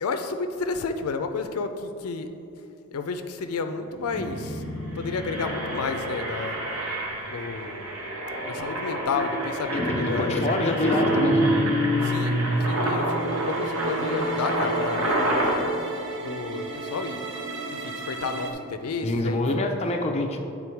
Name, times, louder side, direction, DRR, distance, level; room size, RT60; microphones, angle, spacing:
voice 1, 0.0-2.3 2.9-4.6 4.9-6.6 7.3-7.9 8.5-10.8 12.0-15.7 16.2-17.2 17.7-19.5, left 4 dB, 90° left, 7 dB, 0.4 m, -31 dB
Engine, 3.8-3.9 4.1-4.4 4.8-15.5, right 1 dB, 85° right, 1.2 m, -30 dB
Guitar, 4.0-7.6 9.1-9.5 9.7-12.7, equal, 5° left, 0.9 m, -27 dB
voice 2, 10.0-11.5 19.0-20.4, left 2 dB, 30° left, 2 dB, 0.5 m, -26 dB
sound 1, 11.9-18.5, right 3 dB, 60° right, 0.7 m, -33 dB
8.5 x 3.8 x 4.5 m, 2.7 s
head